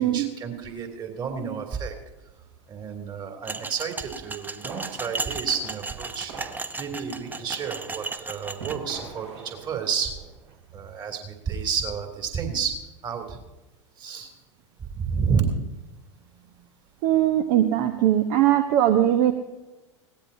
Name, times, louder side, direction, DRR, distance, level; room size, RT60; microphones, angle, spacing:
voice 1, 0.0-1.9 2.7-6.3 6.8-10.1 10.7-13.4 14.0-14.3 14.8-15.4, right 6 dB, 30° right, 4 dB, 3.0 m, -30 dB
sound 1, 3.4-8.8, right 3 dB, 10° right, 0.8 m, -35 dB
sound 2, 4.2-10.6, right 4 dB, 70° right, 6.7 m, -44 dB
voice 2, 17.0-19.3, right 12 dB, 50° right, 7 dB, 1.1 m, -20 dB
21.0 x 17.5 x 2.8 m, 1.0 s
figure-of-eight pair, 80°, 16 cm